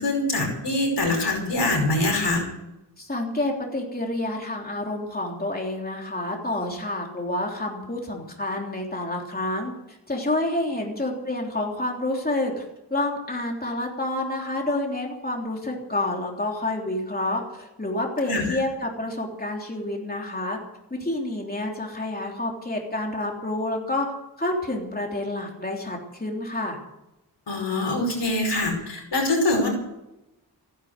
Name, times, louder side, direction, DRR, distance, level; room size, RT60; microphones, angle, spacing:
voice 1, 0.0-2.4 18.3-18.6 27.5-29.7, left 2 dB, 85° left, 2 dB, 5.3 m, -24 dB
voice 2, 3.0-12.6 12.9-20.6 20.9-24.1 24.4-26.8, left 1 dB, 20° left, 0 dB, 3.4 m, -28 dB
15.5 x 11.0 x 8.1 m, 0.92 s
wide cardioid pair, 90°, 41 cm